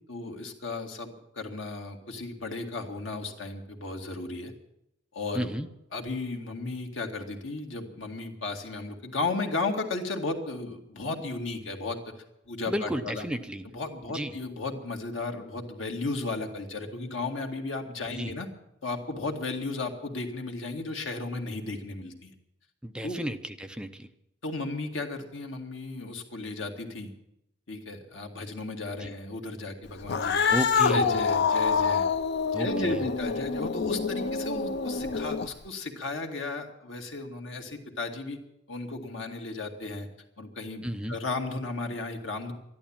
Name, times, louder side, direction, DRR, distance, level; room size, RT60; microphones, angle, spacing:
voice 1, 0.1-4.5 5.1-5.5 5.9-12.0 12.5-13.2 13.7-18.5 18.8-22.3 23.0-23.2 24.4-27.1 27.7-30.5 30.9-32.1 32.6-38.4 38.7-40.1 40.4-42.5, left 3 dB, 80° left, 3 dB, 2.2 m, -34 dB
voice 2, 5.3-5.7 12.7-13.7 14.1-14.4 18.1-18.4 22.8-24.1 29.0-29.1 30.5-31.2 32.5-33.1 40.8-41.2, equal, 5° right, 7 dB, 0.7 m, -33 dB
Cat, 30.0-35.7, left 5 dB, 60° left, 0.7 m, -26 dB
13.0 x 11.5 x 8.8 m, 0.84 s
head